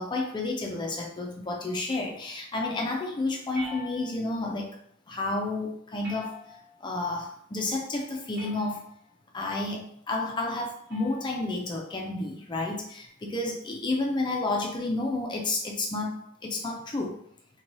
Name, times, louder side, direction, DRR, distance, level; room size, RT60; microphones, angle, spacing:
voice 1, 0.0-4.8 5.1-6.3 6.8-8.8 9.3-17.2, left 2 dB, 20° left, 0 dB, 0.3 m, -31 dB
sound 1, 3.5-4.4 6.0-6.9 8.3-9.0 10.9-11.3, left 2 dB, 45° right, 0.8 m, -43 dB
2.6 x 2.2 x 3.0 m, 0.69 s
head